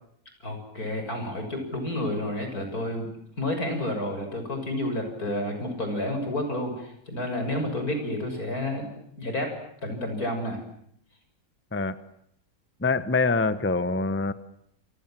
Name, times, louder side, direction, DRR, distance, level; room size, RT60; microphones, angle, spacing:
voice 1, 0.4-3.1 3.4-8.9 9.2-9.6 9.8-10.6, left 1 dB, 80° left, 5 dB, 7.3 m, -30 dB
voice 2, 12.8-14.3, left 3 dB, 10° left, 13 dB, 1.0 m, -24 dB
29.0 x 26.5 x 7.7 m, 0.70 s
omnidirectional pair, 1.6 m